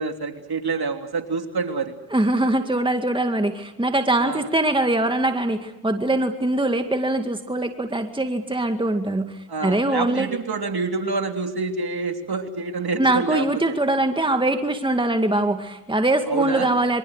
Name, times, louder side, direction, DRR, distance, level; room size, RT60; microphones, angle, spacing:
voice 1, 0.0-1.9 4.2-4.5 9.5-13.8 16.3-16.7, right 4 dB, 50° right, 4 dB, 3.4 m, -27 dB
voice 2, 2.1-10.3 13.0-17.0, right 1 dB, 10° right, 6 dB, 2.1 m, -22 dB
26.5 x 24.0 x 6.7 m, 0.88 s
supercardioid pair, 50°, 49 cm